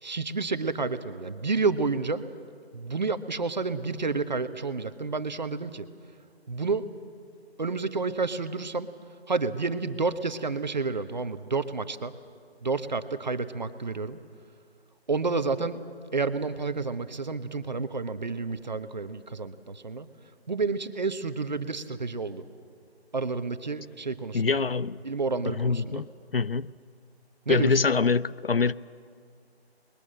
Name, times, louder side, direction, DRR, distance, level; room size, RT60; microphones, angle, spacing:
voice 1, 0.0-2.2 2.7-5.9 6.5-6.9 7.6-8.9 9.3-12.1 12.6-14.2 15.1-15.8 16.1-20.1 20.5-22.4 23.1-24.6 25.0-26.0 27.5-27.8, right 4 dB, 45° right, 1.1 m, -30 dB
voice 2, 24.3-25.0 25.5-26.7 27.5-28.7, left 4 dB, 60° left, 0.6 m, -25 dB
27.0 x 21.5 x 7.6 m
figure-of-eight pair, 160°, 33 cm